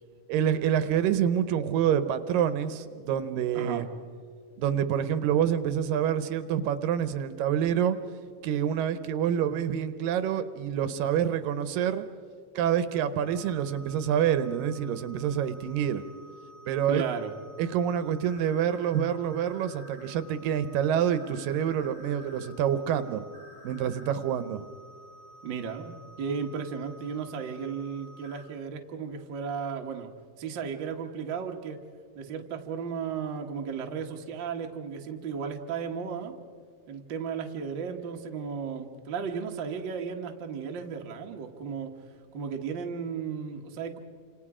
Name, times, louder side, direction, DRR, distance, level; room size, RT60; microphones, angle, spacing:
voice 1, 0.3-3.9 4.6-8.0 8.4-12.1 12.6-16.0 16.7-17.0 17.6-23.2 23.6-24.6, right 9 dB, 80° right, 12 dB, 2.5 m, -27 dB
voice 2, 3.5-3.9 16.9-17.3 25.4-25.9 26.2-30.1 30.4-31.8 32.1-36.3 36.9-41.9 42.3-44.0, right 6 dB, 50° right, 3 dB, 1.5 m, -34 dB
sound 1, 13.2-28.5, equal, 35° left, 4.1 m, -52 dB
29.5 x 27.0 x 4.9 m, 2.2 s
omnidirectional pair, 4.0 m